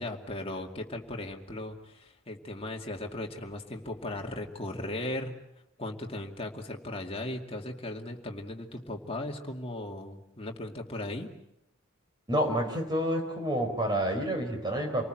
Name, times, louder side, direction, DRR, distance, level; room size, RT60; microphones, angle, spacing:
voice 1, 0.0-5.3 5.8-11.3, left 1 dB, 30° left, 2 dB, 2.3 m, -37 dB
voice 2, 12.3-15.1, equal, 20° right, 4 dB, 4.5 m, -29 dB
28.5 x 19.5 x 7.8 m, 0.86 s
head